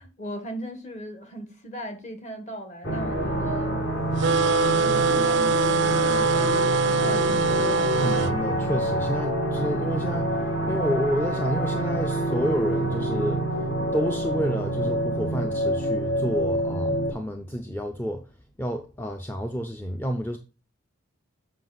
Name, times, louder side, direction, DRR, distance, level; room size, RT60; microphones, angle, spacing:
voice 1, 0.0-3.8 4.8-7.9, right 1 dB, 35° left, 1.4 m, -38 dB
sound 1, 2.8-17.1, right 1 dB, 50° left, 2.1 m, -27 dB
sound 2, 4.2-8.3, right 4 dB, 55° right, 0.4 m, -23 dB
voice 2, 8.0-10.3 10.7-13.4 13.9-18.2 18.6-20.4, equal, 10° left, 0.5 m, -29 dB
7.6 x 5.3 x 4.0 m
head